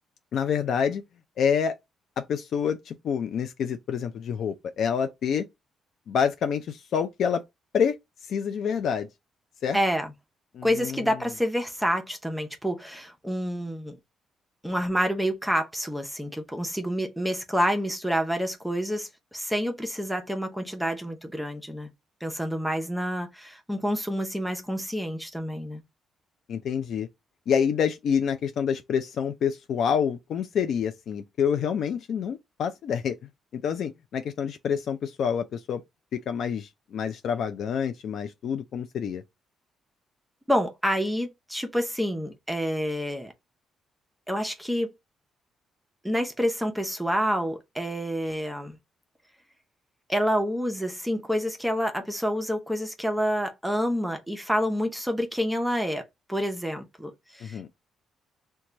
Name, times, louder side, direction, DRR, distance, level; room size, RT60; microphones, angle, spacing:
voice 1, 0.3-1.0 1.4-1.8 2.2-5.5 6.1-7.4 7.7-8.0 8.3-9.1 9.6-9.8 10.5-11.1 26.5-27.1 27.5-33.1 33.5-35.8 36.1-39.2 57.4-57.7, left 7 dB, 65° left, 0.3 m, -27 dB
voice 2, 9.7-10.1 10.6-14.0 14.6-21.9 22.2-25.8 40.5-43.3 44.3-44.9 46.0-48.8 50.1-57.7, equal, 5° right, 0.6 m, -28 dB
3.0 x 2.2 x 3.7 m
cardioid pair, 90°, 0 cm